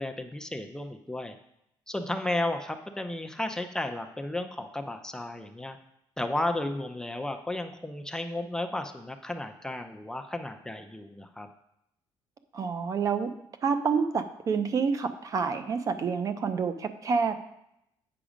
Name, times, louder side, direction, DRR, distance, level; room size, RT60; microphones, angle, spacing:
voice 1, 0.0-1.3 1.9-5.8 6.2-11.5, left 1 dB, 5° left, 6 dB, 0.5 m, -33 dB
voice 2, 12.5-13.3 13.6-17.4, right 5 dB, 40° right, 10 dB, 0.6 m, -28 dB
8.6 x 6.0 x 5.0 m, 0.81 s
cardioid pair, 140°, 9 cm